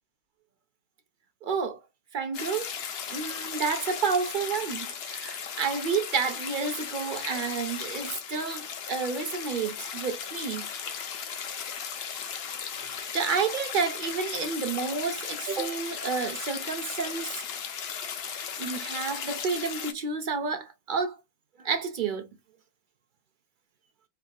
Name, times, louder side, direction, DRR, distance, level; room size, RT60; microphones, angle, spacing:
voice 1, 1.4-1.8 2.1-2.7 3.1-10.7 12.8-17.6 18.6-21.2 21.6-22.3, right 5 dB, 60° right, 0.5 m, -30 dB
sound 1, 2.3-19.9, left 7 dB, 60° left, 0.8 m, -36 dB
3.4 x 2.4 x 2.2 m
omnidirectional pair, 1.4 m